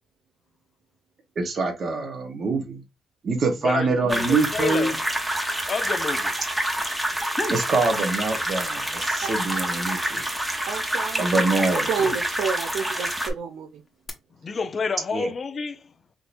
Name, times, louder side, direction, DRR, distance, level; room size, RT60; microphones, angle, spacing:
voice 1, 1.4-2.8 3.2-5.0 7.5-10.3 11.2-11.9 15.1-15.3, right 3 dB, 50° right, 1.0 m, -25 dB
voice 2, 3.6-5.0 5.7-6.3 14.4-15.9, left 5 dB, 40° left, 0.5 m, -28 dB
sound 1, 4.1-13.3, right 1 dB, 10° right, 0.8 m, -27 dB
sound 2, 7.1-7.7 8.1-8.8 9.1-12.7 13.5-14.1, left 2 dB, 25° left, 1.0 m, -36 dB
voice 3, 10.6-11.4 11.9-13.8, right 6 dB, 80° right, 0.5 m, -29 dB
3.7 x 2.8 x 2.5 m
cardioid pair, 90°, 0 cm